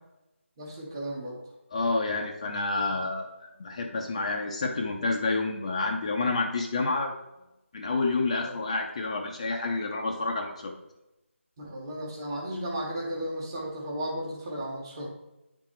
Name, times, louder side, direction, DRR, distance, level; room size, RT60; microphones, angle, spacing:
voice 1, 0.6-1.4 8.3-8.5 11.6-15.1, right 1 dB, 20° right, -2 dB, 1.4 m, -34 dB
voice 2, 1.7-3.3 3.6-7.1 7.7-10.7, left 3 dB, 30° left, 1 dB, 0.7 m, -29 dB
9.5 x 4.0 x 4.4 m, 0.96 s
figure-of-eight pair, 170°, 7 cm